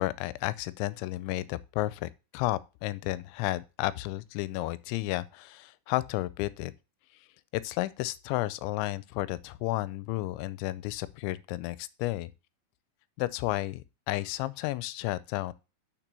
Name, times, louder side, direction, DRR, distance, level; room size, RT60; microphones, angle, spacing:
voice 1, 0.0-6.7 7.6-12.3 13.2-15.5, left 17 dB, 85° left, 2.9 m, -32 dB
6.5 x 6.0 x 6.7 m
omnidirectional pair, 5.3 m